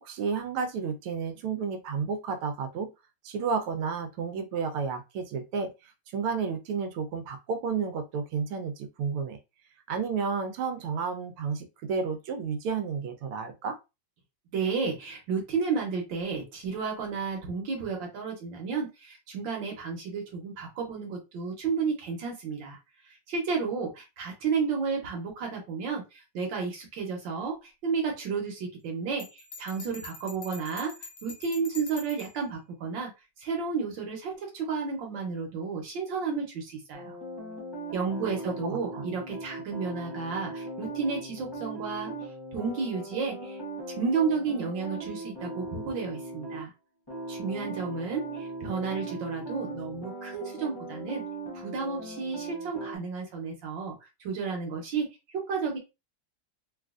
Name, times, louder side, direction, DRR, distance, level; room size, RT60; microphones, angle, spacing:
voice 1, 0.0-2.9 3.2-9.4 9.9-13.8 38.1-39.0, right 5 dB, 85° right, 7 dB, 1.5 m, -32 dB
voice 2, 14.5-22.8 23.3-30.9 31.2-33.1 33.4-37.1 37.9-42.1 42.5-43.6 44.0-46.7 47.3-51.2 51.5-53.9 54.2-55.1 55.3-55.8, right 5 dB, 65° right, 1 dB, 1.5 m, -32 dB
Bell, 29.2-32.4, left 3 dB, 60° left, 1.0 m, -45 dB
sound 1, 36.9-46.6 47.1-53.0, right 2 dB, 40° left, 0.3 m, -39 dB
4.0 x 2.4 x 2.4 m, 0.26 s
omnidirectional pair, 2.3 m